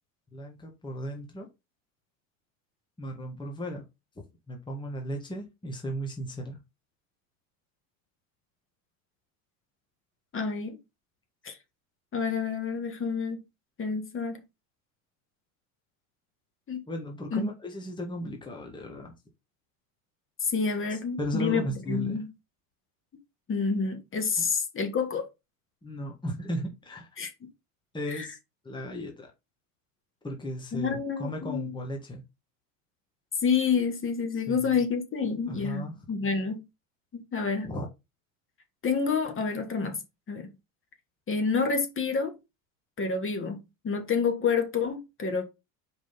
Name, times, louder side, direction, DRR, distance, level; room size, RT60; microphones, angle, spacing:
voice 1, 0.3-1.5 3.0-3.8 4.2-6.6 16.9-19.1 20.9-22.2 24.4-24.5 25.8-27.1 27.9-28.4 28.6-29.3 30.2-32.2 34.3-34.8 35.5-35.9 37.6-37.9, equal, 10° left, 1.6 m, -36 dB
voice 2, 10.3-10.8 11.4-11.6 12.1-13.4 13.8-14.4 16.7-16.8 17.3-17.4 20.4-21.6 21.9-22.3 23.5-25.3 27.2-27.3 28.1-28.3 30.7-31.7 33.4-36.6 37.3-37.7 38.8-40.0 40.3-40.5 41.3-42.3 43.0-45.4, left 5 dB, 30° left, 1.8 m, -28 dB
5.0 x 4.0 x 5.3 m
supercardioid pair, 105°, 40 cm